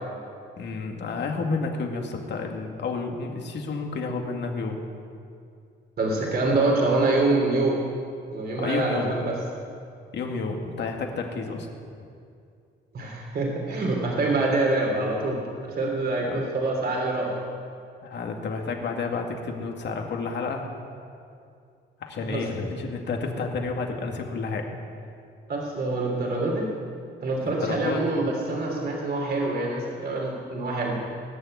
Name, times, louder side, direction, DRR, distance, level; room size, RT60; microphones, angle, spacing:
voice 1, 0.6-4.8 8.6-9.1 10.1-11.7 16.3-16.4 18.0-20.6 22.0-24.7 27.4-28.0, left 4 dB, 60° left, 2 dB, 2.2 m, -30 dB
voice 2, 6.0-7.8 8.3-9.3 12.9-17.3 22.2-22.4 25.5-26.7 27.2-31.0, right 2 dB, 50° right, -1 dB, 3.2 m, -25 dB
19.5 x 7.0 x 9.8 m, 2.4 s
cardioid pair, 90°, 20 cm